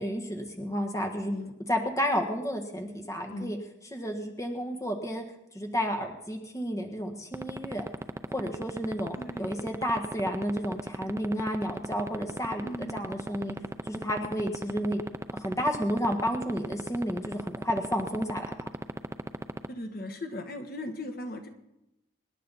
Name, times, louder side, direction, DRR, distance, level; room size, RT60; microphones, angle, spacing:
voice 1, 0.0-1.3 1.7-3.6 3.9-5.2 5.5-7.9 8.3-13.6 13.8-15.0 15.3-18.5, equal, 15° left, 3 dB, 1.4 m, -31 dB
sound 1, 7.3-19.7, right 1 dB, 15° right, 0.5 m, -32 dB
voice 2, 9.1-9.5 12.6-13.0 14.2-14.5 19.7-21.5, left 1 dB, 45° left, 6 dB, 1.4 m, -38 dB
26.0 x 11.0 x 4.1 m, 0.88 s
head